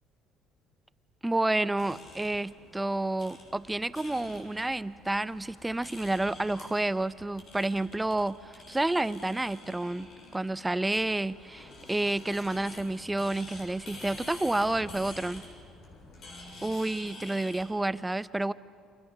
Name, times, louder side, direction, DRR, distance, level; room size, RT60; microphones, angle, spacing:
voice 1, 1.2-10.1 10.3-15.4 16.6-18.5, right 2 dB, 10° right, 16 dB, 0.7 m, -30 dB
sound 1, 1.8-17.7, left 2 dB, 55° left, 6.9 m, -48 dB
29.0 x 26.5 x 6.9 m, 2.2 s
cardioid pair, 100°, 0 cm